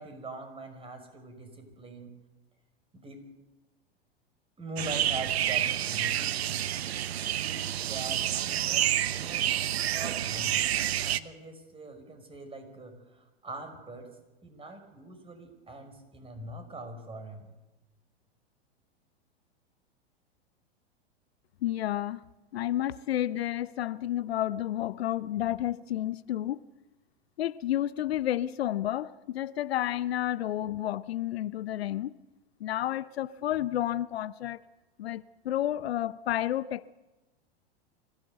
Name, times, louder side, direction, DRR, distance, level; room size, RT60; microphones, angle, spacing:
voice 1, 0.0-2.1 2.9-3.2 4.6-6.6 7.4-10.6 11.0-14.1 14.4-17.5, right 2 dB, 15° right, 5.4 m, -43 dB
sound 1, 4.8-11.2, right 11 dB, 75° right, 1.0 m, -29 dB
voice 2, 21.6-22.3 22.5-26.6 27.4-32.1 32.6-34.6 35.0-36.9, left 13 dB, 75° left, 0.8 m, -31 dB
24.5 x 16.0 x 8.1 m
hypercardioid pair, 105°, 32 cm